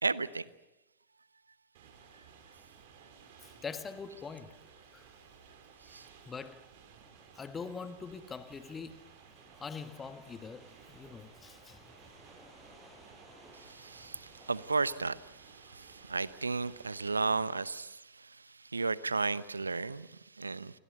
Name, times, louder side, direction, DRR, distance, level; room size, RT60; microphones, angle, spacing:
voice 1, 0.0-0.4 2.1-2.2 5.9-6.1 13.5-20.8, right 4 dB, 80° right, 0.9 m, -34 dB
sound 1, 1.7-17.4, right 6 dB, 50° right, 5.2 m, -57 dB
voice 2, 3.4-4.6 4.9-5.1 5.9-6.0 6.2-6.6 7.4-9.0 9.5-11.9, left 5 dB, 15° left, 1.7 m, -43 dB
sound 2, 7.0-14.7, equal, 5° right, 6.8 m, -60 dB
28.0 x 24.0 x 5.5 m
figure-of-eight pair, 90°, 0 cm